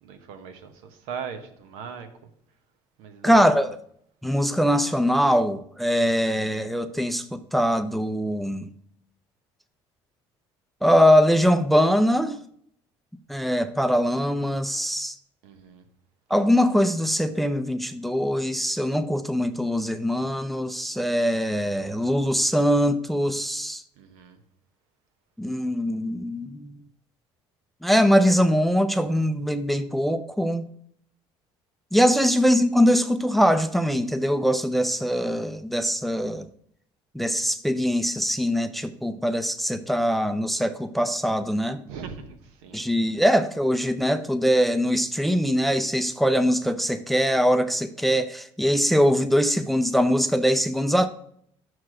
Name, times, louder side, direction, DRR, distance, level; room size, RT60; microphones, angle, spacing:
voice 1, 0.0-2.1 3.0-3.4 15.4-15.8 24.0-24.4 41.9-42.8, right 6 dB, 90° right, 1.1 m, -39 dB
voice 2, 3.2-3.7 4.2-8.7 10.8-12.4 13.3-15.1 16.3-23.8 25.4-26.8 27.8-30.7 31.9-36.5 37.1-41.8 42.7-51.1, equal, ahead, 0.4 m, -22 dB
6.2 x 4.7 x 6.1 m
cardioid pair, 115°, 11 cm